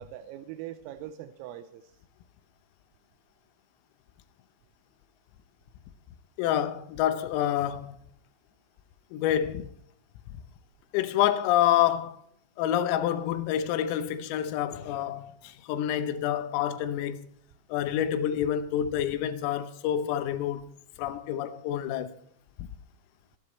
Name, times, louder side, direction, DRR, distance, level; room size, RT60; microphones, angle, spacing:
voice 1, 0.0-2.0, right 12 dB, 85° right, 3.4 m, -42 dB
voice 2, 6.4-8.0 9.1-9.7 10.9-12.2 12.6-17.3 17.7-20.6 21.0-22.1, left 11 dB, 90° left, 3.7 m, -27 dB
26.5 x 11.5 x 3.2 m
omnidirectional pair, 5.9 m